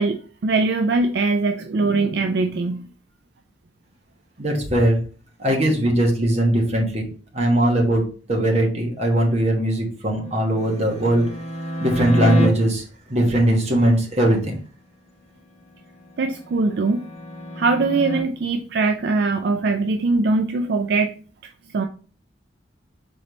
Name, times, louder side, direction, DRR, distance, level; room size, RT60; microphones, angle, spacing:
voice 1, 0.0-2.8 16.2-17.1 17.6-21.1 21.7-21.9, right 3 dB, 60° right, 6 dB, 0.4 m, -21 dB
voice 2, 4.4-5.0 5.4-7.1 7.3-11.3 11.8-12.8 13.1-14.6, right 1 dB, 35° right, 1 dB, 1.2 m, -20 dB
sound 1, 10.2-12.5 15.9-18.2, equal, 35° left, 1.0 m, -29 dB
4.1 x 3.3 x 3.9 m, 0.38 s
head